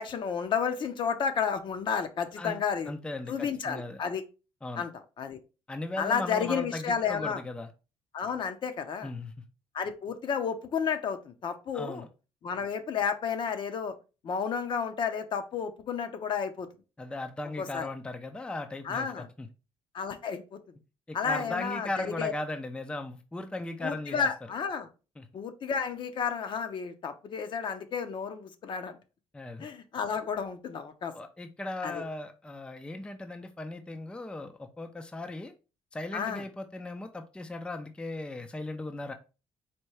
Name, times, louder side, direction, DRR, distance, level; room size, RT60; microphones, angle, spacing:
voice 1, 0.0-2.9 3.3-4.2 4.8-4.9 5.2-5.4 6.0-7.4 8.1-9.1 9.7-12.1 12.4-13.9 14.2-16.7 17.6-17.9 18.8-19.3 19.9-20.6 21.1-22.3 23.8-24.9 25.3-29.0 29.6-31.1 31.8-32.0 36.1-36.4, left 6 dB, 50° left, 8 dB, 0.7 m, -31 dB
voice 2, 2.9-4.0 4.6-4.8 5.7-7.7 9.0-9.3 11.7-12.1 17.0-19.5 21.1-24.3 25.2-25.3 29.3-29.7 31.1-35.5 35.9-39.1, left 2 dB, 10° left, 6 dB, 0.4 m, -37 dB
4.3 x 2.2 x 4.7 m, 0.32 s
cardioid pair, 115°, 11 cm